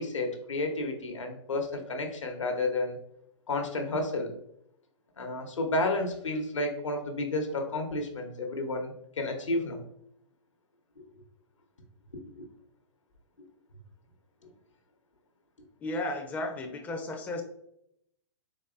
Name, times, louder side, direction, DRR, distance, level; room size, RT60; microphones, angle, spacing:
voice 1, 0.0-3.0 3.5-4.3 5.2-9.8 12.4-12.5, left 2 dB, 85° left, 4 dB, 0.9 m, -31 dB
voice 2, 15.8-17.4, left 2 dB, 10° left, 3 dB, 0.4 m, -34 dB
3.9 x 3.1 x 2.4 m, 0.75 s
hypercardioid pair, 120°, 16 cm